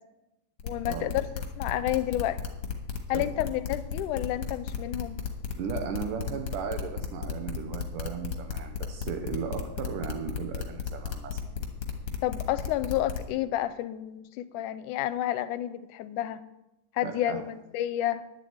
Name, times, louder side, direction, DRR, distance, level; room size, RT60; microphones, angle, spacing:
voice 1, 0.6-1.3 1.6-2.4 3.1-5.2 12.2-16.4 16.9-18.2, left 13 dB, 80° left, 13 dB, 2.1 m, -30 dB
sound 1, 0.6-13.3, left 8 dB, 50° left, 2.1 m, -33 dB
voice 2, 5.5-11.4 17.0-17.4, right 7 dB, 85° right, 5 dB, 2.6 m, -36 dB
11.0 x 7.6 x 8.6 m, 0.93 s
omnidirectional pair, 3.7 m